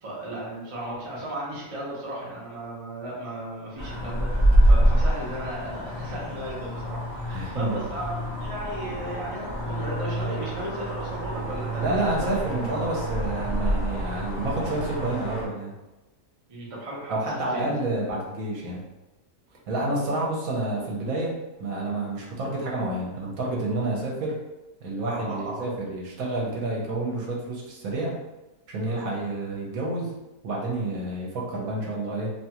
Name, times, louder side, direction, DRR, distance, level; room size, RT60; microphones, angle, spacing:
voice 1, 0.0-12.6 16.5-17.7 25.1-25.7 28.9-29.0, right 1 dB, 40° right, -5 dB, 0.5 m, -35 dB
sound 1, 3.8-15.5, equal, 50° left, 0.5 m, -26 dB
voice 2, 7.3-7.8 11.8-15.7 17.1-18.8 19.7-24.4 24.8-28.2 28.7-30.1 30.4-32.3, right 2 dB, 70° right, -3 dB, 1.1 m, -29 dB
2.8 x 2.3 x 2.8 m, 1.0 s
omnidirectional pair, 1.6 m